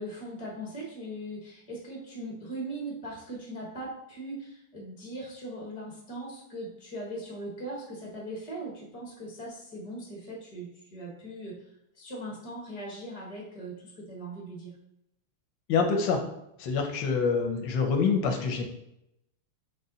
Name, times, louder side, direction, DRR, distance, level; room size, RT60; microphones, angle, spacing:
voice 1, 0.0-11.6 11.9-14.8, right 1 dB, 55° left, -3 dB, 0.4 m, -40 dB
voice 2, 15.7-16.2 16.6-18.7, left 5 dB, 70° left, 3 dB, 1.1 m, -26 dB
5.2 x 2.2 x 3.8 m, 0.81 s
omnidirectional pair, 2.4 m